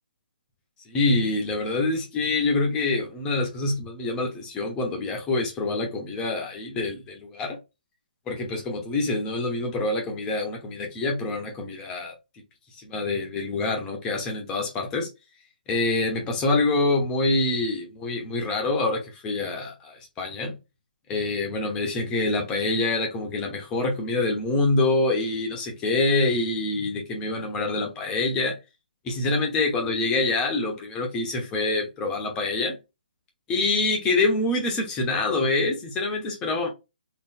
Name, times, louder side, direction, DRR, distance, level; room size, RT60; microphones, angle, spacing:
voice 1, 0.9-7.6 8.3-12.1 12.8-15.1 15.7-20.5 21.1-28.6 29.0-32.8 33.5-36.7, left 2 dB, 10° left, 0.9 m, -26 dB
3.9 x 2.1 x 4.2 m
hypercardioid pair, 165°, 5 cm